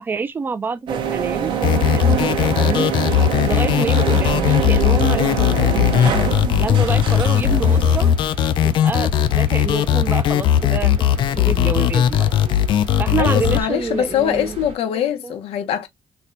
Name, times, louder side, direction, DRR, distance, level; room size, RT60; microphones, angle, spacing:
voice 1, 0.0-1.5 1.9-2.9 3.5-6.1 6.6-8.1 8.6-12.3 13.0-14.6 15.2-15.3, right 5 dB, 20° right, 0.4 m, -27 dB
sound 1, 0.9-8.1, right 7 dB, 55° right, 0.7 m, -24 dB
sound 2, 1.6-13.6, left 10 dB, 55° left, 0.3 m, -18 dB
sound 3, 7.4-14.8, right 5 dB, 90° right, 1.1 m, -38 dB
voice 2, 13.2-15.9, left 10 dB, 90° left, 0.8 m, -22 dB
4.2 x 2.2 x 2.5 m
cardioid pair, 180°, 10 cm